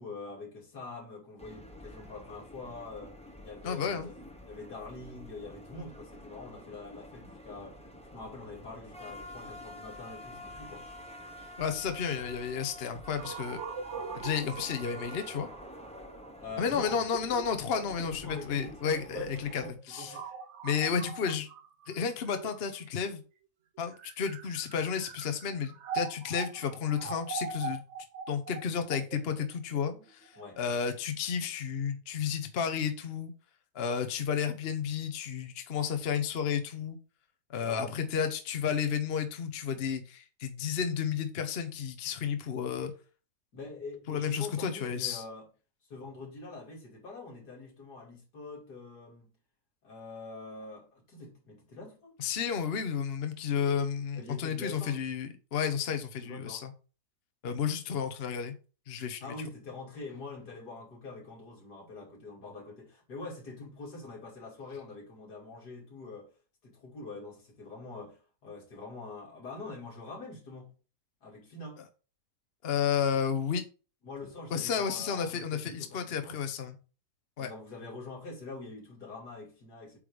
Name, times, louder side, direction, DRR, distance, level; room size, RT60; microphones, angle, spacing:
voice 1, 0.0-3.1 3.4-7.8 8.1-10.9 16.4-17.0 17.8-20.3 30.4-30.6 37.5-38.0 43.5-45.5 45.9-49.3 49.8-52.2 54.1-55.0 56.2-56.6 59.2-66.3 66.6-70.7 71.2-71.8 74.0-76.4 77.4-80.0, left 3 dB, 75° left, 3.2 m, -44 dB
sound 1, 1.4-19.7, equal, 5° left, 0.8 m, -48 dB
voice 2, 3.6-4.1 11.6-13.6 14.1-15.5 16.6-20.2 20.6-21.5 21.9-23.2 23.8-27.8 28.3-33.3 33.7-37.0 37.5-42.9 44.1-45.2 52.2-56.7 57.4-58.5 58.9-59.2 72.6-73.6 74.5-76.8 77.4-77.5, left 7 dB, 45° left, 0.9 m, -32 dB
sound 2, 13.2-23.0 23.8-30.7, right 5 dB, 55° right, 0.9 m, -42 dB
8.5 x 3.3 x 5.0 m
omnidirectional pair, 1.7 m